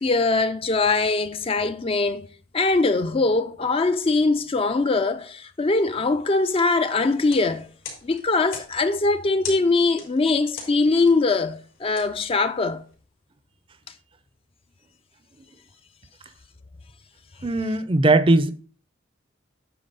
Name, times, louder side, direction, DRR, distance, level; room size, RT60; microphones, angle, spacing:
voice 1, 0.0-2.3 2.5-7.7 8.0-12.8, left 3 dB, 30° left, 0.4 m, -22 dB
sound 1, 7.2-12.9, left 5 dB, 90° left, 3.8 m, -43 dB
voice 2, 17.4-18.5, right 2 dB, 25° right, 0.5 m, -19 dB
9.3 x 4.0 x 5.3 m
head